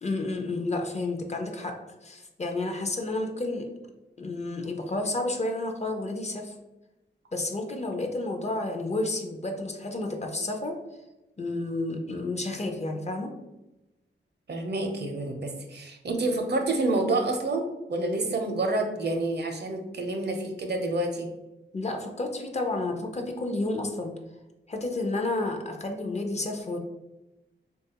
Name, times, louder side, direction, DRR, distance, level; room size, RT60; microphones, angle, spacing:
voice 1, 0.0-1.7 2.0-3.7 4.2-6.5 7.3-10.8 11.4-13.3 21.7-24.1 24.7-26.8, left 2 dB, 35° left, 3 dB, 0.4 m, -31 dB
voice 2, 14.5-21.3, right 2 dB, 60° right, 3 dB, 0.5 m, -28 dB
3.4 x 2.3 x 2.8 m, 1.0 s
wide cardioid pair, 80°, 20 cm